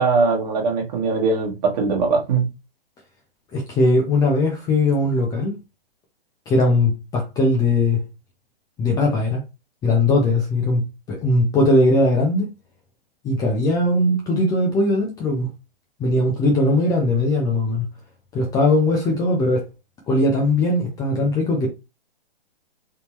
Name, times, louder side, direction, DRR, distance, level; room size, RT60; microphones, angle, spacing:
voice 1, 0.0-2.4, right 4 dB, 40° right, 1.4 m, -20 dB
voice 2, 3.5-5.6 6.5-8.0 8.8-9.4 9.8-10.8 11.1-12.5 13.2-15.5 16.0-17.9 18.3-19.6 20.1-21.7, left 2 dB, 10° left, 0.5 m, -19 dB
3.6 x 2.8 x 2.9 m
hypercardioid pair, 130°, 31 cm